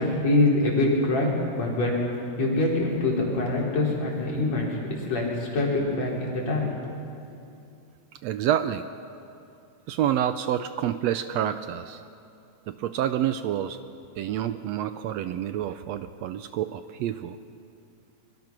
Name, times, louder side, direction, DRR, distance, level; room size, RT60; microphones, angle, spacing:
voice 1, 0.0-2.0 2.4-6.9, left 2 dB, 65° left, -3 dB, 5.1 m, -25 dB
voice 2, 8.2-8.8 9.9-12.0 12.7-13.8 14.2-17.4, right 11 dB, 75° right, 10 dB, 1.7 m, -28 dB
24.5 x 23.0 x 6.0 m, 2.5 s
omnidirectional pair, 3.3 m